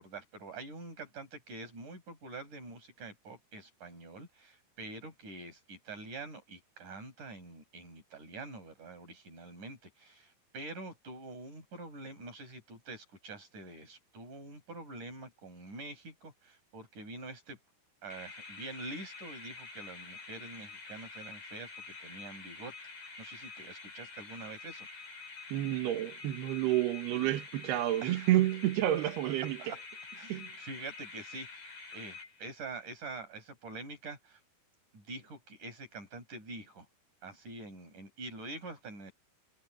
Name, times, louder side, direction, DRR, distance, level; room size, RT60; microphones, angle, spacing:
voice 1, 0.0-17.6 18.0-22.7 23.2-24.9 27.1-27.3 28.0-28.3 29.6-29.8 30.2-31.6 31.9-34.4 34.9-36.9 37.2-39.1, right 2 dB, 50° right, 8.6 m, -46 dB
sound 1, 18.1-32.8, left 4 dB, 60° left, 8.6 m, -48 dB
voice 2, 25.5-29.7 30.3-30.5, right 14 dB, 75° right, 3.5 m, -30 dB
omnidirectional pair, 4.7 m